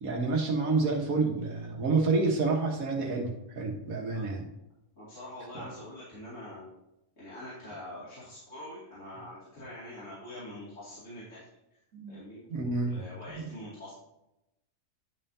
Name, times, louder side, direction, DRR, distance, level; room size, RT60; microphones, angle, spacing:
voice 1, 0.0-4.5 5.6-5.7 11.9-12.2 12.5-13.0 13.4-13.5, right 3 dB, 75° right, 1 dB, 1.8 m, -29 dB
voice 2, 5.0-6.7 7.2-11.4 11.7-11.8 12.1-13.9, left 1 dB, 60° left, -11 dB, 2.9 m, -45 dB
10.5 x 5.6 x 2.8 m, 0.89 s
omnidirectional pair, 1.5 m